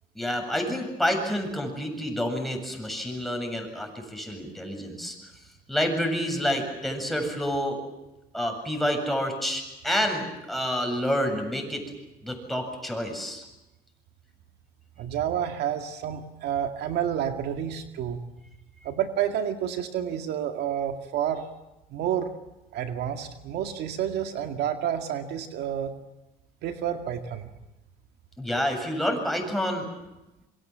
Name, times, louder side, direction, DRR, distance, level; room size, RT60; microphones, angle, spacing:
voice 1, 0.2-5.2 5.7-7.8 8.3-11.8 12.2-13.4 28.4-29.9, equal, ahead, 3 dB, 7.5 m, -28 dB
voice 2, 15.0-18.2 18.8-21.5 21.9-22.3 22.7-25.9 26.6-27.5, right 9 dB, 75° right, 6 dB, 2.2 m, -29 dB
27.5 x 24.5 x 7.5 m, 0.98 s
cardioid pair, 110°, 17 cm